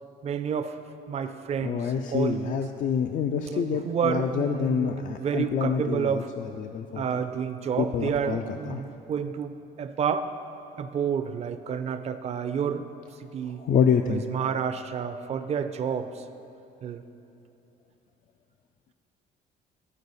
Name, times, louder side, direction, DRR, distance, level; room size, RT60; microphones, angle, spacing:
voice 1, 0.2-0.8 1.1-2.6 3.3-6.3 6.9-10.3 10.8-12.9 13.3-13.6 14.1-16.2 16.8-17.0, right 7 dB, 40° right, 9 dB, 0.5 m, -30 dB
voice 2, 1.6-7.0 7.8-8.8 13.6-14.2, left 7 dB, 50° left, 5 dB, 0.4 m, -27 dB
13.5 x 4.7 x 4.0 m, 2.8 s
cardioid pair, 110°, 17 cm